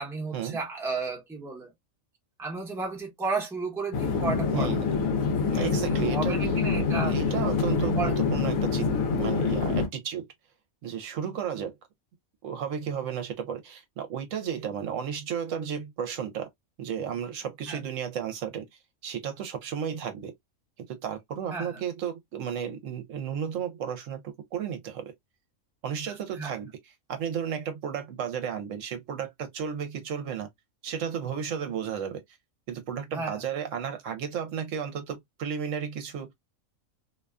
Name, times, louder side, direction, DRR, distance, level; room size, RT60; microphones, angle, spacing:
voice 1, 0.0-1.7 2.4-4.7 5.5-7.1 8.0-8.1 17.7-17.8 21.5-21.8 26.3-26.5 33.1-33.4, right 4 dB, ahead, 0.6 m, -33 dB
sound 1, 3.9-9.9, left 5 dB, 90° left, 1.0 m, -26 dB
voice 2, 4.5-4.9 5.5-6.5 7.0-10.2 10.8-11.7 12.4-16.5 16.8-18.6 19.0-20.3 20.8-24.2 24.5-25.0 25.8-26.7 27.1-30.5 30.8-32.2 32.7-36.3, right 8 dB, 70° right, 0.9 m, -33 dB
2.6 x 2.2 x 2.2 m
omnidirectional pair, 1.4 m